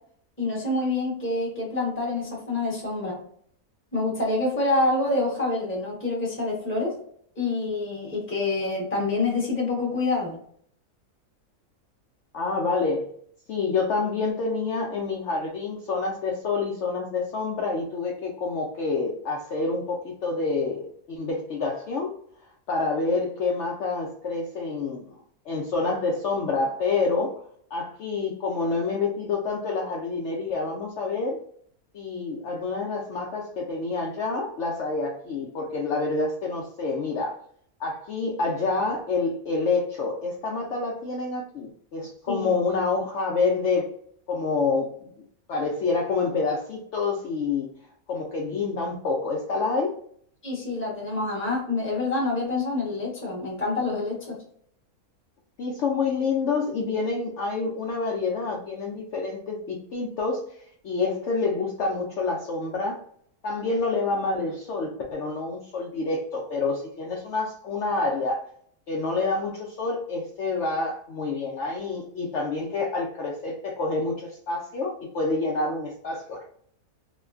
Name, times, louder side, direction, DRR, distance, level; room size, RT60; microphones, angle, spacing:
voice 1, 0.4-3.2 3.9-6.9 7.4-10.4 42.3-42.5 50.4-54.4, left 2 dB, 10° left, -4 dB, 0.9 m, -27 dB
voice 2, 12.3-13.1 13.5-22.1 22.7-25.2 25.5-27.4 27.7-31.4 31.9-37.4 37.8-43.9 44.3-45.1 45.5-47.7 48.1-49.9 55.6-60.5 60.8-63.0 63.4-68.4 68.9-76.5, left 3 dB, 65° left, -2 dB, 0.8 m, -27 dB
3.0 x 2.2 x 2.4 m, 0.63 s
omnidirectional pair, 1.5 m